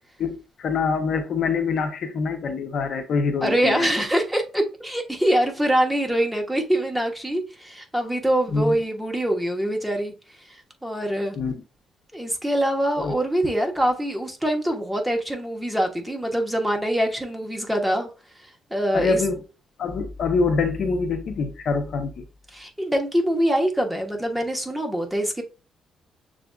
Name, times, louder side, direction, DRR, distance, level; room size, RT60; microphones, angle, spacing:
voice 1, 0.2-3.9 8.5-8.7 11.4-11.5 13.0-13.1 18.9-19.4 19.8-22.2, left 4 dB, 65° left, 0.6 m, -25 dB
voice 2, 3.4-10.1 10.5-11.4 12.1-18.1 18.7-19.2 22.5-25.4, right 1 dB, 5° right, 1.0 m, -24 dB
6.7 x 2.5 x 2.3 m
cardioid pair, 90°, 0 cm